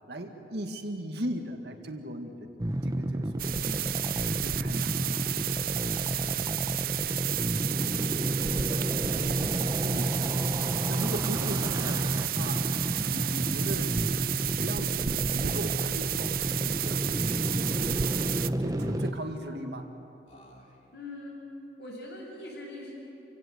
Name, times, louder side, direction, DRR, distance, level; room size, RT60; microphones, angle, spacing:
voice 1, 0.1-2.5 2.8-5.7 9.8-10.2 10.9-18.0 18.4-20.0, right 1 dB, 70° right, 4 dB, 2.0 m, -38 dB
sound 1, 2.6-19.1, right 1 dB, 20° right, 0.8 m, -31 dB
sound 2, 3.4-18.5, right 13 dB, 55° right, 0.4 m, -32 dB
Speech, 3.9-4.4 5.6-6.4 7.6-8.2 9.4-10.1 11.4-12.0 13.1-13.8 14.9-15.5 16.7-17.4 18.3-19.1 20.3-21.0, left 1 dB, 40° left, 2.9 m, -53 dB
voice 2, 6.0-6.4 9.2-9.6 20.9-21.4 21.8-22.9, left 1 dB, 70° left, -2 dB, 7.4 m, -43 dB
27.5 x 17.0 x 8.0 m, 2.9 s
head